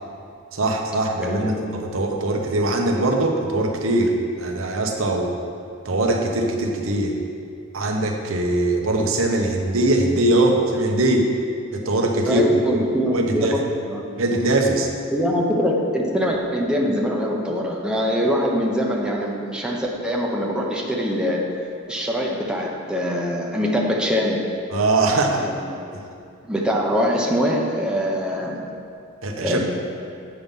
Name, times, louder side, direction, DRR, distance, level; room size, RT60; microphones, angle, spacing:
voice 1, 0.5-5.4 5.8-7.2 7.7-11.3 11.7-12.4 12.7-12.8 13.1-13.6 14.2-14.9 24.7-25.4 29.2-29.6, right 2 dB, 85° right, 2 dB, 1.0 m, -21 dB
voice 2, 1.2-1.6 12.3-14.1 15.1-21.4 21.9-24.4 25.4-26.0 26.5-28.6 29.4-29.6, equal, 5° right, -2 dB, 0.8 m, -23 dB
8.6 x 5.9 x 5.4 m, 2.4 s
head